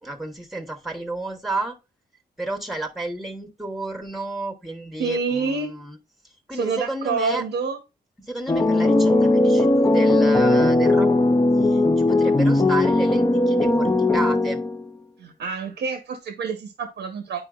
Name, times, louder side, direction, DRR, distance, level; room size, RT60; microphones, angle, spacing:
voice 1, 0.0-1.8 2.4-6.0 6.5-7.4 8.2-14.6, right 2 dB, ahead, 1.1 m, -31 dB
voice 2, 5.0-5.8 6.5-7.8 15.2-17.4, right 5 dB, 85° right, 0.9 m, -27 dB
sound 1, 8.5-14.9, left 2 dB, 20° left, 0.6 m, -18 dB
8.8 x 4.6 x 2.4 m
cardioid pair, 75°, 17 cm